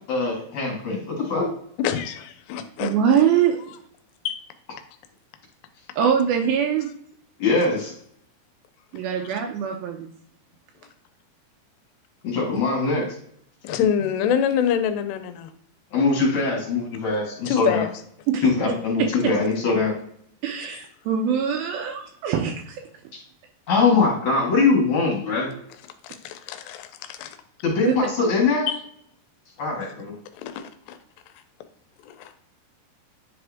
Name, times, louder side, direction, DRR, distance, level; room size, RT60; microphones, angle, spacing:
voice 1, 0.1-1.5 7.4-7.9 12.2-13.1 15.9-17.8 18.4-19.9 23.7-25.5 27.6-28.7 29.6-30.2, left 4 dB, 50° left, -2 dB, 2.7 m, -22 dB
voice 2, 1.8-2.9 4.2-4.4 9.2-9.3 13.6-15.5 17.5-17.9 26.0-27.4 28.7-28.8 30.3-31.0 32.0-32.3, left 8 dB, 90° left, 9 dB, 2.8 m, -26 dB
voice 3, 2.8-3.6 6.0-6.9 8.9-10.1 18.3-18.5 19.2-19.3 20.4-22.8 27.9-28.0, right 8 dB, 80° right, 3 dB, 2.2 m, -23 dB
10.0 x 3.5 x 3.5 m, 0.67 s
omnidirectional pair, 4.7 m